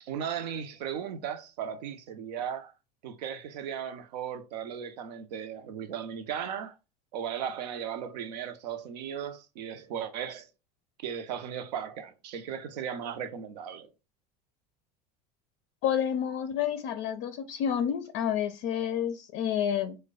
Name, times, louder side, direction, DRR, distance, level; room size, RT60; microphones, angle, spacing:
voice 1, 0.0-2.7 3.0-6.8 7.1-10.5 11.0-13.9, right 8 dB, 80° right, 0.6 m, -36 dB
voice 2, 15.8-20.0, left 9 dB, 60° left, 0.4 m, -29 dB
3.1 x 2.1 x 3.6 m
hypercardioid pair, 85°, 21 cm